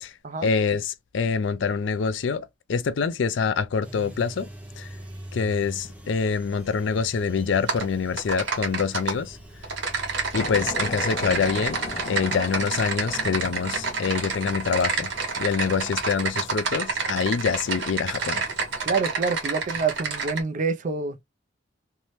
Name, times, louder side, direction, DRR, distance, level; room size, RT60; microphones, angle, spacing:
voice 1, 0.4-4.5 4.8-4.9 5.3-9.4 10.3-11.8 12.1-15.1 15.4-18.4, left 5 dB, 70° left, 0.4 m, -25 dB
sound 1, 3.8-15.2, right 1 dB, 5° right, 0.7 m, -44 dB
Typing, 7.7-7.9 8.2-9.1 9.6-20.4, right 4 dB, 75° right, 1.0 m, -29 dB
sound 2, 10.3-18.9, left 2 dB, 35° left, 0.7 m, -39 dB
voice 2, 18.8-21.2, right 4 dB, 45° right, 0.4 m, -27 dB
2.7 x 2.1 x 3.1 m
head